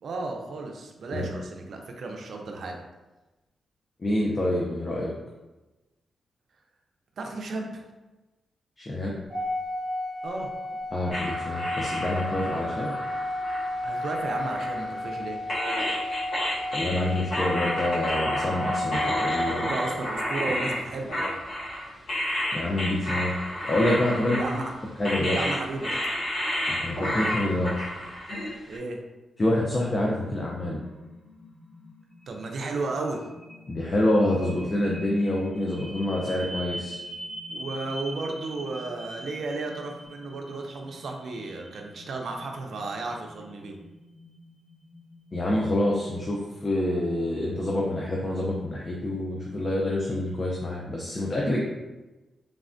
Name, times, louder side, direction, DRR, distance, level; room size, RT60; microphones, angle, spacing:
voice 1, 0.0-2.8 7.2-7.8 10.2-10.5 13.8-15.4 19.5-21.3 24.1-24.7 25.2-25.9 28.7-29.0 32.3-33.2 37.5-43.7, right 3 dB, 65° right, 2 dB, 0.4 m, -34 dB
voice 2, 4.0-5.1 8.8-9.2 10.9-12.9 16.7-19.7 22.5-23.3 23.6-24.4 25.0-25.4 26.7-27.7 29.4-30.8 33.7-37.0 45.3-51.6, left 1 dB, 35° left, -3 dB, 0.4 m, -27 dB
Organ, 9.3-20.1, left 1 dB, 25° right, 1.0 m, -32 dB
sound 1, 11.1-15.1 15.5-28.8, equal, 70° left, 1.1 m, -31 dB
sound 2, 30.5-47.8, right 1 dB, 5° left, 1.2 m, -44 dB
3.3 x 2.1 x 2.5 m, 1.1 s
cardioid pair, 90°, 0 cm